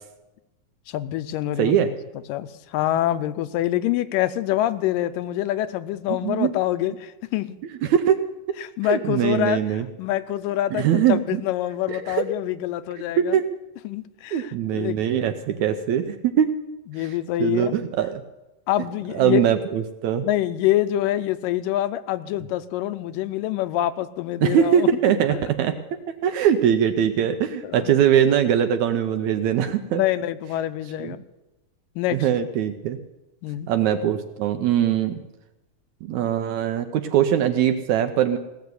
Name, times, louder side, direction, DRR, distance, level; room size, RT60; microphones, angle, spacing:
voice 1, 0.9-1.9 2.3-7.6 8.6-13.4 13.8-15.3 16.9-17.8 18.7-19.4 20.2-25.4 27.6-27.9 29.9-31.2 32.0-32.3 33.4-33.7, left 13 dB, 85° left, 12 dB, 2.3 m, -26 dB
voice 2, 1.6-1.9 6.1-6.5 7.8-8.2 8.8-9.9 10.7-11.4 11.9-12.2 13.2-13.5 14.3-16.5 17.0-17.1 17.4-18.2 19.1-20.3 24.4-25.7 26.1-30.0 31.0-31.1 32.1-33.0 33.7-35.2 36.0-38.4, right 9 dB, 75° right, 8 dB, 1.9 m, -21 dB
17.0 x 7.2 x 9.4 m, 0.99 s
omnidirectional pair, 3.9 m